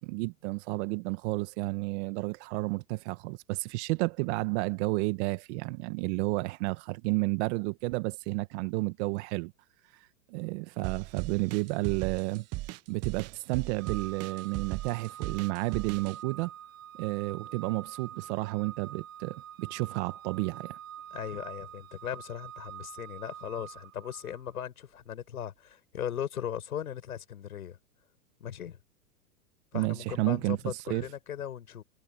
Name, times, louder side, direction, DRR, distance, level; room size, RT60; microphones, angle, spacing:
voice 1, 0.0-9.5 10.3-12.5 12.9-16.5 17.0-20.8 29.7-30.6 30.9-31.0, right 25 dB, 50° right, 1.7 m, -31 dB
sound 1, 10.8-16.2, right 18 dB, 35° right, 1.4 m, -37 dB
Organ, 13.8-24.5, right 10 dB, 70° right, 2.3 m, -46 dB
voice 2, 21.1-27.8 28.4-28.8 29.7-31.8, left 9 dB, 90° left, 7.5 m, -38 dB
hypercardioid pair, 120°, 42 cm